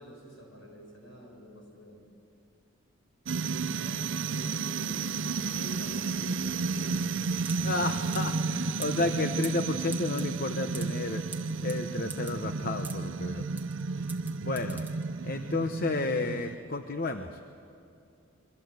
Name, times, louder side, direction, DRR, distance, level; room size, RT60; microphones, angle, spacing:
voice 1, 0.0-2.0 3.7-5.0 5.3-7.2, equal, 65° left, 1 dB, 7.2 m, -48 dB
sound 1, 3.3-16.6, right 4 dB, 55° right, 0.5 m, -32 dB
sound 2, 7.5-15.5, right 4 dB, 10° right, 1.5 m, -46 dB
voice 2, 7.6-11.2 11.6-13.4 14.0-14.1 14.4-14.8 15.2-17.4, left 2 dB, 45° left, 7 dB, 0.9 m, -32 dB
29.0 x 23.0 x 8.0 m, 2.6 s
head